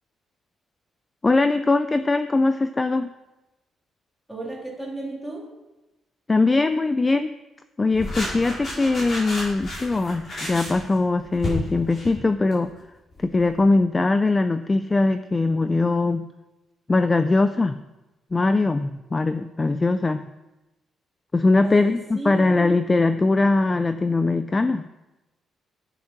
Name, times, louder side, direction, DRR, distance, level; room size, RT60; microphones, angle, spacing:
voice 1, 1.2-3.1 6.3-7.3 7.8-12.7 13.2-16.2 16.9-17.8 18.3-20.2 21.3-24.8, left 3 dB, 15° left, 11 dB, 0.3 m, -21 dB
voice 2, 4.3-5.4 21.6-22.5, right 1 dB, 5° right, -4 dB, 3.0 m, -33 dB
sound 1, 7.9-12.7 13.1-13.6, left 1 dB, 40° left, 4.8 m, -32 dB
10.5 x 9.0 x 5.8 m, 1.0 s
cardioid pair, 170°, 0 cm